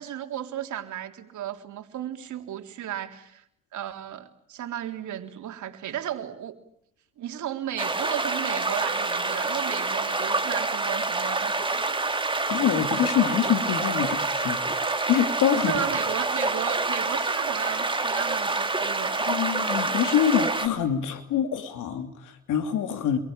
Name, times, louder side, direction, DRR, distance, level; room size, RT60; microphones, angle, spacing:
voice 1, 0.0-3.4 3.7-6.6 7.2-12.0 15.5-19.3, right 11 dB, 75° right, 5 dB, 3.7 m, -35 dB
sound 1, 7.8-20.7, right 3 dB, 15° right, 3.1 m, -27 dB
voice 2, 12.5-14.6 15.1-15.9 19.1-23.2, left 9 dB, 90° left, 6 dB, 3.0 m, -25 dB
27.5 x 23.5 x 8.8 m, 0.74 s
cardioid pair, 90°, 30 cm